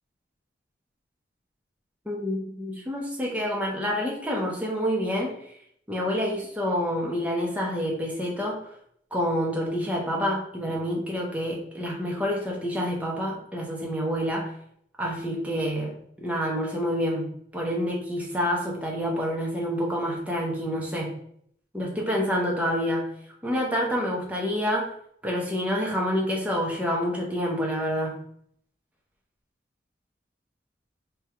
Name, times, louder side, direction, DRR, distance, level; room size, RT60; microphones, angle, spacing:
voice 1, 2.1-5.3 5.9-8.7 9.1-14.5 15.0-21.1 21.7-23.1 23.4-24.9 25.2-28.2, equal, 10° right, -2 dB, 0.8 m, -28 dB
3.4 x 2.4 x 4.3 m, 0.67 s
head